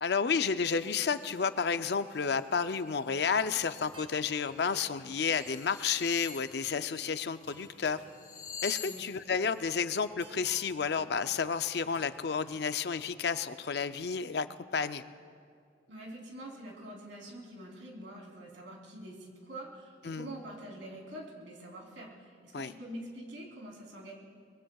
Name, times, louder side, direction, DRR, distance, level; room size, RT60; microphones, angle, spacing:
voice 1, 0.0-8.0 8.6-14.5 14.7-15.0 20.0-20.3 22.5-22.7, left 6 dB, 60° left, 11 dB, 0.5 m, -31 dB
sound 1, 0.7-1.4 1.8-2.4 2.7-4.0 4.5-4.7 5.0-7.7 8.0-10.1, left 7 dB, 45° left, 0.8 m, -47 dB
sound 2, 3.2-13.3, right 1 dB, 30° right, 1.7 m, -58 dB
voice 2, 15.9-24.1, right 1 dB, 85° right, -2 dB, 3.4 m, -45 dB
24.0 x 21.5 x 2.4 m, 2.2 s
head